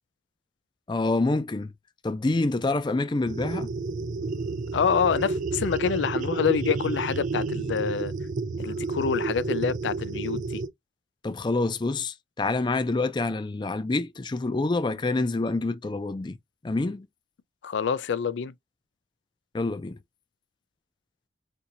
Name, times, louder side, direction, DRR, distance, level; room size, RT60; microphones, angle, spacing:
voice 1, 0.9-1.7 2.0-3.7 11.2-16.4 16.6-17.1 19.5-20.0, left 2 dB, 25° left, 0.4 m, -27 dB
sound 1, 3.3-10.7, right 3 dB, 45° right, 0.4 m, -30 dB
voice 2, 4.7-8.1 8.6-10.6 17.6-18.5, left 6 dB, 90° left, 0.4 m, -26 dB
4.4 x 2.7 x 2.5 m
head